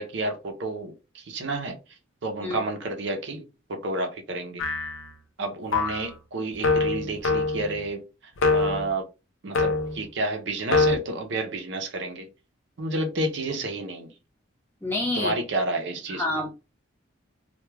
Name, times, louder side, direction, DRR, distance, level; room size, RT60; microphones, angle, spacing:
voice 1, 0.0-1.8 2.2-3.4 3.7-4.6 5.4-8.0 8.5-9.0 9.4-12.3 12.8-14.1 15.2-16.2, right 2 dB, 60° right, 0.5 m, -30 dB
sound 1, 4.6-5.1 5.7-6.1 6.6-7.8 8.4-8.9 9.6-10.0 10.7-11.0, left 3 dB, 85° left, 0.5 m, -23 dB
voice 2, 14.8-15.3 16.1-16.5, left 2 dB, 10° left, 0.7 m, -27 dB
2.2 x 2.1 x 3.1 m
head